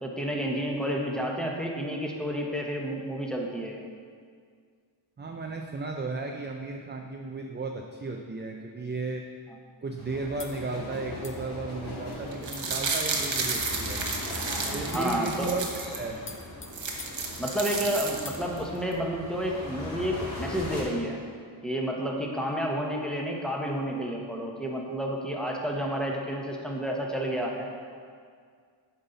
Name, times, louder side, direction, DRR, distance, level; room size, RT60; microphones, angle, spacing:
voice 1, 0.0-3.8 14.9-15.5 17.4-21.2 21.6-27.7, equal, ahead, -1 dB, 1.0 m, -30 dB
voice 2, 5.2-9.2 9.8-14.0 14.7-16.2, right 3 dB, 25° right, 2 dB, 0.4 m, -34 dB
sound 1, 10.0-20.8, left 1 dB, 50° left, 1.8 m, -40 dB
sound 2, 10.4-10.6 11.2-11.5 12.1-12.2 12.5-12.8 13.3-13.7 14.3-14.5 14.9-15.2 15.7-15.9 16.3-18.0 18.2-18.4, left 3 dB, 25° left, 0.7 m, -45 dB
sound 3, 12.3-16.0 16.4-16.5 16.7-18.6 18.9-19.0, right 4 dB, 70° right, 1.0 m, -32 dB
8.0 x 5.5 x 4.0 m, 2.1 s
wide cardioid pair, 75°, 47 cm